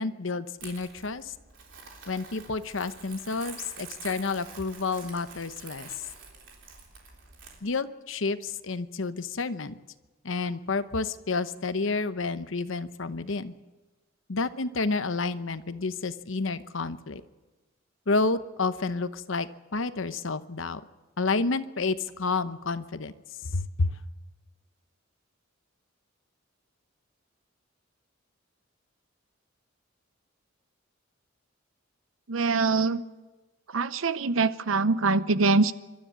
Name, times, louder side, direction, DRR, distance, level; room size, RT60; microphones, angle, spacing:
voice 1, 0.0-1.3 2.1-5.9 7.6-9.8 10.2-13.5 14.3-17.2 18.1-20.8 21.2-23.1 23.5-24.0, left 3 dB, 70° left, 12 dB, 0.9 m, -30 dB
Crumpling crinkling, 0.6-7.6, right 5 dB, 65° right, 3.6 m, -47 dB
voice 2, 32.3-33.0 33.7-35.7, right 3 dB, 80° right, 15 dB, 0.8 m, -24 dB
27.5 x 13.0 x 8.3 m, 1.2 s
head